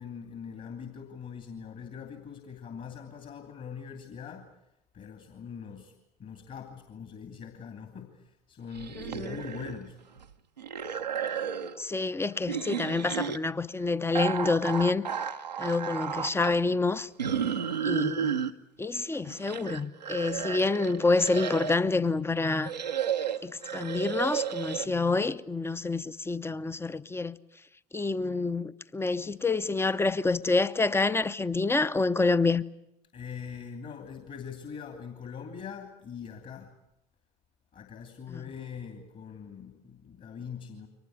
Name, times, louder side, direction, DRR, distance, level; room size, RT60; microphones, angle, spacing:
voice 1, 0.0-4.5 4.9-5.9 6.2-10.0 33.1-36.7 37.7-40.9, left 7 dB, 40° left, 2.9 m, -42 dB
sound 1, 8.7-9.9 10.2-11.8 12.5-13.4 14.1-16.5 17.2-18.5 19.1-21.9 22.5-24.9, right 8 dB, 90° right, 0.9 m, -32 dB
voice 2, 9.0-9.4 11.8-15.0 15.6-17.1 17.8-18.4 18.8-22.7 23.4-27.4 27.9-32.6 38.3-38.4, left 3 dB, 10° left, 0.9 m, -27 dB
23.5 x 19.5 x 9.5 m
figure-of-eight pair, 65°, 21 cm